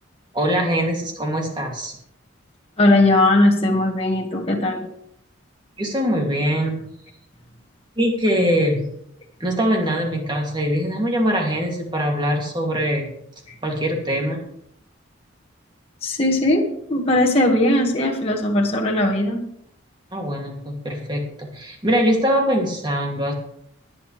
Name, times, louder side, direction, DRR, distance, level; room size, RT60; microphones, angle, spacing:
voice 1, 0.3-1.9 5.8-6.9 8.0-8.9 9.4-13.1 13.6-14.4 20.1-23.3, equal, 20° right, 1 dB, 2.5 m, -22 dB
voice 2, 2.8-4.9 13.5-13.6 16.0-19.4, left 1 dB, 30° left, -1 dB, 1.7 m, -19 dB
22.5 x 8.6 x 3.3 m, 0.72 s
head